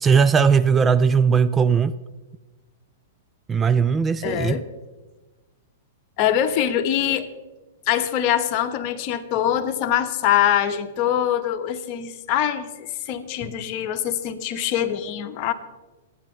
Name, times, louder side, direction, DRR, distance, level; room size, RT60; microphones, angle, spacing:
voice 1, 0.0-1.9 3.5-4.6, right 6 dB, 20° right, 0.4 m, -18 dB
voice 2, 4.2-4.6 6.2-7.3 7.9-15.5, left 10 dB, 45° left, 1.2 m, -23 dB
25.0 x 9.7 x 3.4 m
hypercardioid pair, 115°, 0 cm